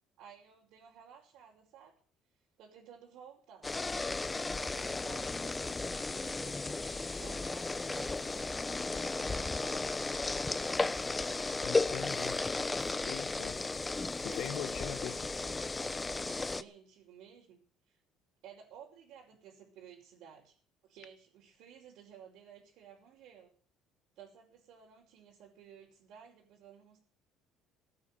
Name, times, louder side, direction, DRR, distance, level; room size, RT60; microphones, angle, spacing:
voice 1, 0.2-2.0 2.6-3.7 4.2-10.5 14.3-17.6 17.9-18.0 18.4-20.6 20.8-23.5 24.2-27.0, right 8 dB, 70° right, 5.2 m, -55 dB
sound 1, 3.6-16.6, left 3 dB, 15° left, 0.8 m, -35 dB
voice 2, 11.6-12.5 13.0-13.6 14.2-15.3, left 11 dB, 60° left, 1.4 m, -41 dB
17.0 x 10.0 x 7.7 m
cardioid pair, 135°, 0 cm